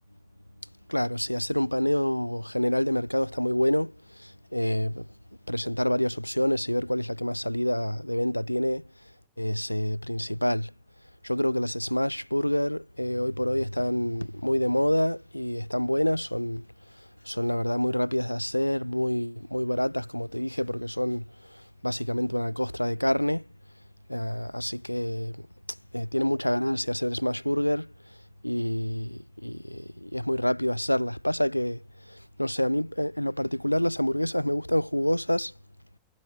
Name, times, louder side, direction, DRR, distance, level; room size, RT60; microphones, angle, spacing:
voice 1, 0.9-3.9 4.5-5.0 5.5-8.8 9.4-10.7 11.2-16.6 17.3-21.2 21.8-23.4 24.1-25.3 25.9-27.9 28.4-31.8 32.4-35.5, left 1 dB, 90° left, 3.7 m, -27 dB
figure-of-eight pair, 90°, 0 cm